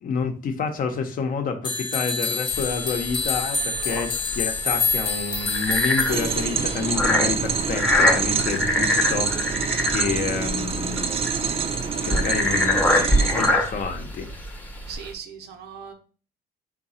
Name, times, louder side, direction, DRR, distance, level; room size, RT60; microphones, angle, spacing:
voice 1, 0.0-11.1 12.0-14.3, left 5 dB, 55° left, 5 dB, 0.7 m, -29 dB
sound 1, 1.6-6.9, left 4 dB, 30° left, 1.1 m, -27 dB
sound 2, 2.5-15.1, left 1 dB, 10° left, 0.7 m, -25 dB
sound 3, 6.1-13.5, right 5 dB, 35° right, 0.4 m, -26 dB
voice 2, 14.9-15.9, right 7 dB, 75° right, 6 dB, 0.7 m, -39 dB
3.8 x 2.3 x 4.1 m, 0.39 s
cardioid pair, 110°, 17 cm